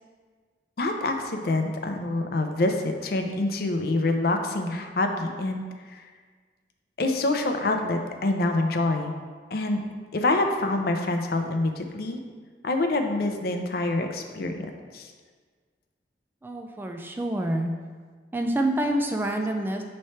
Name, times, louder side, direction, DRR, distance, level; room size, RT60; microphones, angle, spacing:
voice 1, 0.8-2.8 3.0-5.6 5.9-6.0 7.0-9.2 9.5-9.8 10.1-12.2 12.6-14.7 14.9-15.1, left 2 dB, 60° left, 5 dB, 0.5 m, -26 dB
voice 2, 16.4-17.7 18.3-19.8, right 1 dB, 10° right, 3 dB, 0.3 m, -27 dB
6.7 x 3.2 x 4.3 m, 1.6 s
head